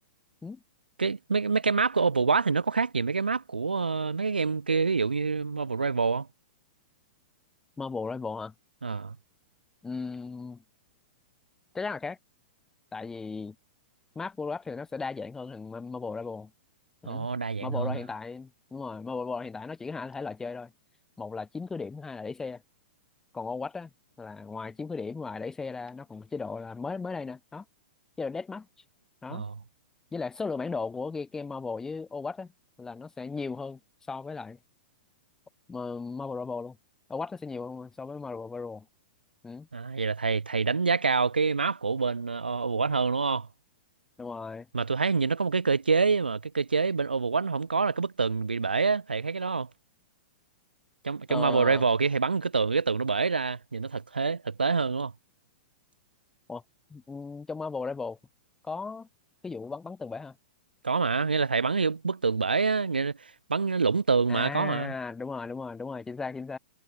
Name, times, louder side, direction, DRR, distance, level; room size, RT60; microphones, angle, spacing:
voice 1, 1.0-6.3 8.8-9.2 17.0-18.0 29.3-29.6 39.7-43.5 44.7-49.7 51.0-55.1 60.8-64.9, right 4 dB, 75° right, 0.8 m, -26 dB
voice 2, 7.8-8.5 9.8-10.6 11.7-12.2 12.9-13.6 14.1-16.5 17.0-17.3 17.6-20.7 21.2-22.6 23.3-23.9 24.2-27.6 28.2-28.7 29.2-29.4 30.1-32.5 32.8-33.8 34.1-34.6 35.7-36.8 37.1-38.9 39.4-39.7 44.2-44.7 51.3-51.8 56.5-56.6 56.9-58.2 58.6-59.1 59.4-60.3 64.3-66.6, left 4 dB, 10° left, 0.9 m, -36 dB
figure-of-eight pair, 105°, 5 cm